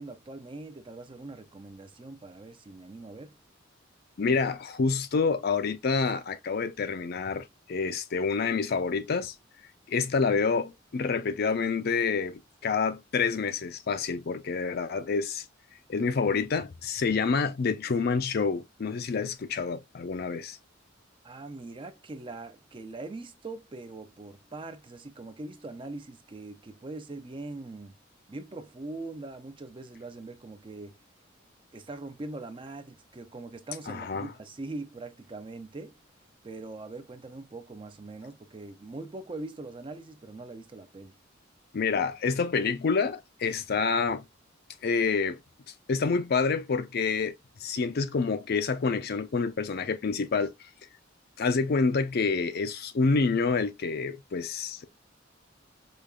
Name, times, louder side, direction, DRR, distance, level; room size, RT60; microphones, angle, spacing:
voice 1, 0.0-3.4 21.2-28.0 28.3-31.0 31.7-36.0 36.4-41.1, right 2 dB, 25° right, 0.4 m, -42 dB
voice 2, 4.2-9.3 9.9-15.4 15.9-20.6 33.9-34.3 41.7-44.2 44.8-45.4 45.9-47.4 47.6-50.5 51.4-54.9, left 4 dB, 55° left, 0.5 m, -28 dB
5.1 x 2.3 x 2.3 m
head